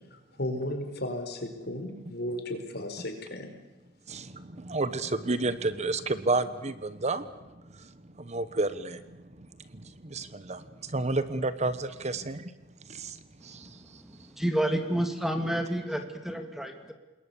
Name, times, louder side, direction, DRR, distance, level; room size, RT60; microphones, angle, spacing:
voice 1, 0.1-3.5 12.2-12.3, left 1 dB, 60° left, 6 dB, 4.7 m, -35 dB
voice 2, 4.1-7.3 7.7-7.9 8.2-12.5 12.8-14.0, right 3 dB, 35° right, 13 dB, 1.1 m, -31 dB
voice 3, 14.0-16.9, right 1 dB, ahead, 6 dB, 2.6 m, -30 dB
27.0 x 21.5 x 7.1 m, 1.1 s
head